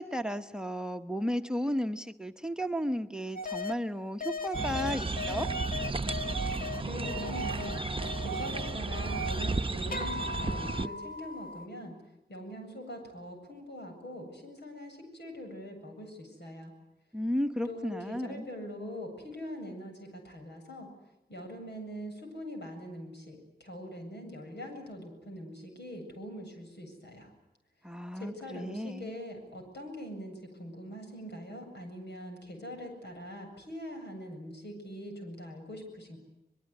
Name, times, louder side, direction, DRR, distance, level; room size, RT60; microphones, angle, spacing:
voice 1, 0.0-5.5 17.1-18.5 27.8-29.1, equal, 5° right, 9 dB, 1.1 m, -34 dB
sound 1, 3.4-3.7 4.2-9.6 9.9-11.7, left 2 dB, 55° left, 1.5 m, -38 dB
sound 2, 4.5-10.9, right 3 dB, 30° right, 0.9 m, -33 dB
voice 2, 6.8-7.8 8.2-12.0 12.3-16.7 17.6-20.9 21.3-27.3 28.1-36.2, equal, 85° left, 3 dB, 7.8 m, -43 dB
24.0 x 22.0 x 9.8 m, 0.92 s
wide cardioid pair, 90°, 17 cm